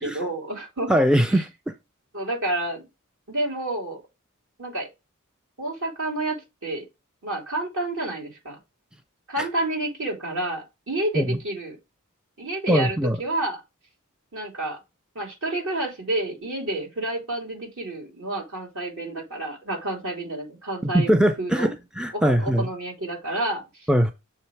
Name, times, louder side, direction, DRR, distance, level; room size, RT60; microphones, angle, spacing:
voice 1, 0.0-0.9 1.3-1.4 2.1-2.9 3.3-4.0 4.6-4.9 5.6-6.4 6.6-6.8 7.2-8.6 9.3-11.8 12.4-13.6 14.3-14.8 15.1-21.7 22.1-23.9, right 1 dB, 65° right, 3.1 m, -29 dB
voice 2, 0.9-1.5 9.4-9.5 11.1-11.4 12.7-13.2 20.8-22.7 23.9-24.1, equal, 5° right, 0.4 m, -21 dB
7.1 x 3.3 x 4.4 m
head